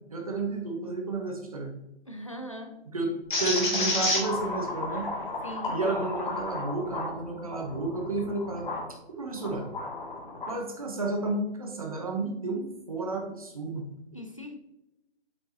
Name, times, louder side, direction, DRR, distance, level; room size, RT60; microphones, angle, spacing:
voice 1, 0.1-1.7 2.9-3.1 3.4-5.1 5.7-8.7 9.1-9.7 10.5-13.9, right 3 dB, 30° right, 2 dB, 0.9 m, -31 dB
voice 2, 2.1-2.8 5.4-5.8 14.1-14.6, equal, 30° left, 4 dB, 0.5 m, -40 dB
sound 1, 3.3-8.9 9.4-10.6, left 2 dB, 45° left, 2.2 m, -31 dB
7.9 x 4.6 x 2.7 m, 0.91 s
hypercardioid pair, 180°, 35 cm